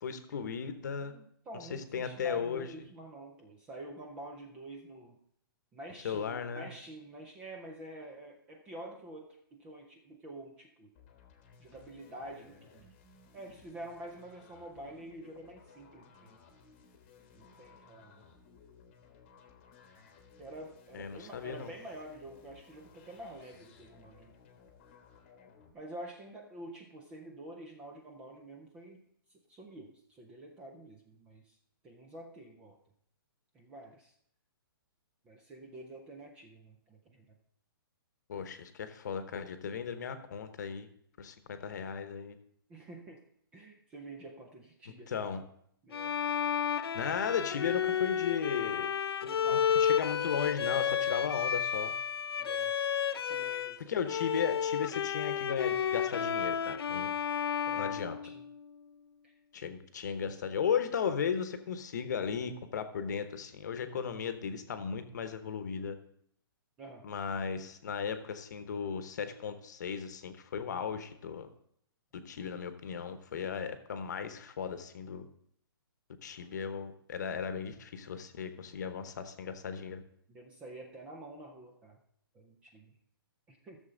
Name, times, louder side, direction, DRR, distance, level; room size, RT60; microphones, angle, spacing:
voice 1, 0.0-1.1 1.5-2.7 6.0-6.7 20.9-21.7 38.3-40.9 41.2-42.4 45.1-45.4 46.9-48.9 49.5-51.9 53.9-57.1 57.8-58.2 59.5-66.0 67.0-71.5 72.3-75.2 76.2-80.0, left 7 dB, 45° left, 10 dB, 1.0 m, -36 dB
voice 2, 1.1-5.2 5.7-10.9 11.6-12.9 13.3-16.4 17.3-18.2 20.4-24.3 25.7-29.0 29.5-31.6 31.8-32.8 33.5-34.1 35.2-37.3 42.7-43.2 43.5-45.4 45.8-46.2 49.3-49.8 52.4-52.8 53.3-53.9 57.7-58.4 59.2-59.3 66.8-67.0 80.3-82.0 82.3-82.9 83.5-83.8, right 1 dB, 10° right, 2 dB, 0.4 m, -48 dB
sound 1, 10.9-25.7, left 5 dB, 25° left, 1.1 m, -59 dB
Bowed string instrument, 45.9-53.8 54.1-58.8, left 8 dB, 85° left, 0.6 m, -32 dB
14.5 x 6.9 x 3.9 m, 0.68 s
hypercardioid pair, 175°, 13 cm